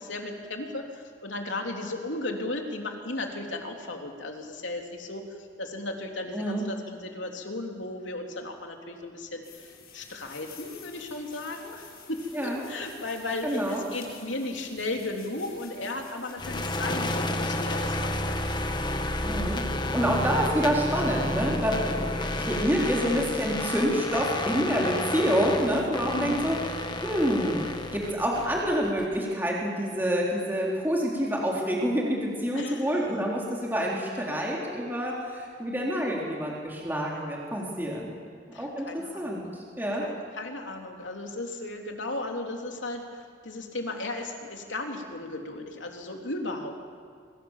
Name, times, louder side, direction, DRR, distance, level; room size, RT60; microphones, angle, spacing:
voice 1, 0.0-5.2 5.6-11.8 12.1-18.6 24.7-24.9 25.9-26.4 32.5-32.9 38.5-39.4 40.0-46.8, left 2 dB, 85° left, 2 dB, 3.3 m, -35 dB
voice 2, 6.3-6.6 12.3-12.6 13.4-13.8 19.3-19.6 19.9-26.6 27.0-38.2 38.6-40.1, equal, 10° right, -3 dB, 3.7 m, -27 dB
sound 1, 9.4-17.6, left 5 dB, 50° left, 7.5 m, -50 dB
sound 2, 16.4-29.2, left 1 dB, 25° left, 1.4 m, -31 dB
27.0 x 23.5 x 7.4 m, 2.1 s
head